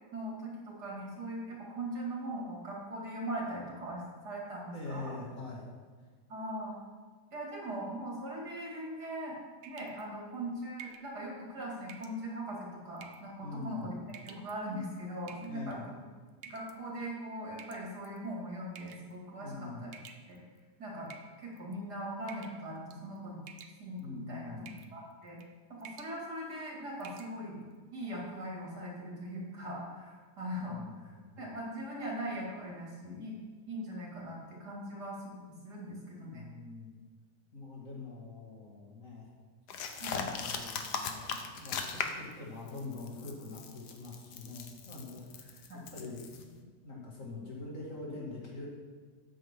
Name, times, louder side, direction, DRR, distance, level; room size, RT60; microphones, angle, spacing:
voice 1, 0.1-5.1 6.3-6.8 7.3-9.4 9.6-13.9 14.2-16.0 16.4-19.9 20.3-20.4 20.8-21.1 21.4-23.4 23.8-24.5 24.9-25.4 25.8-27.6 27.9-33.4 33.7-36.5 40.0-40.3 45.7-45.8, right 1 dB, 90° right, -3 dB, 3.1 m, -40 dB
voice 2, 4.7-5.7 13.4-13.9 15.5-15.8 19.4-19.8 24.0-24.9 30.6-31.4 36.1-37.0 37.5-39.3 40.1-48.8, left 3 dB, 55° left, -4 dB, 2.9 m, -44 dB
sound 1, 9.6-10.0 10.8-11.1 11.9-12.2 13.0-13.3 14.1-14.5 15.3-15.7 16.4-16.8 17.6-18.2 18.8-19.1 19.9-20.6 21.1-21.7 22.3-22.6 22.9-23.2 23.5-24.0 24.7-24.9 25.3-25.5 25.8-26.2 26.5-26.6 27.0-27.3, right 7 dB, 70° right, 1.3 m, -51 dB
sound 2, 39.7-42.3 42.7-46.4, left 6 dB, 85° left, 1.5 m, -39 dB
13.0 x 8.6 x 3.8 m, 1.5 s
omnidirectional pair, 1.7 m